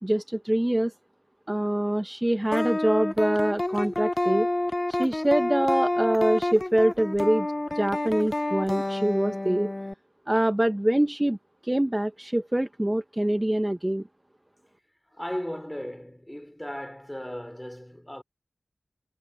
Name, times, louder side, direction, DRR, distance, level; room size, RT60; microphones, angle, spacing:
voice 1, 0.0-0.9 1.5-4.5 4.9-7.5 7.7-9.7 10.3-11.4 11.6-14.0, right 1 dB, 20° right, 1.0 m, -24 dB
sound 1, 2.5-9.9, left 1 dB, 30° left, 0.7 m, -28 dB
voice 2, 15.1-18.2, equal, 10° left, 5.2 m, -36 dB
cardioid pair, 40°, 0 cm